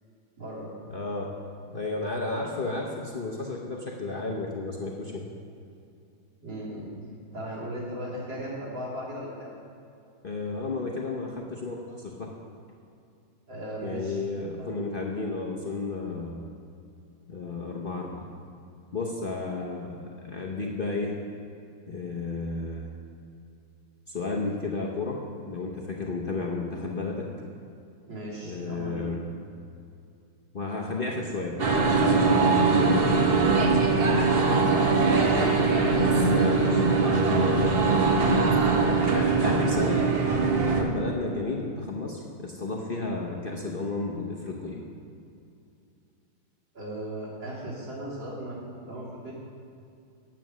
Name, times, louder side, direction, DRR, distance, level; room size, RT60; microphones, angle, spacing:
voice 1, 0.4-0.7 6.4-6.9 7.3-9.5 13.5-14.2 14.6-14.8 17.4-17.5 28.1-29.1 34.7-36.0 43.4-43.7 46.7-49.3, right 1 dB, 65° right, -7 dB, 3.9 m, -37 dB
voice 2, 0.9-1.3 1.7-5.3 10.2-12.3 13.8-16.4 17.3-18.3 18.9-21.1 21.9-22.9 24.1-25.2 25.4-27.3 28.4-29.2 30.5-33.5 35.6-37.8 39.1-40.1 40.5-44.8, left 3 dB, 55° left, -2 dB, 0.6 m, -32 dB
sound 1, 31.6-40.8, right 4 dB, 45° right, 0.8 m, -22 dB
9.1 x 9.0 x 6.2 m, 2.5 s
omnidirectional pair, 2.3 m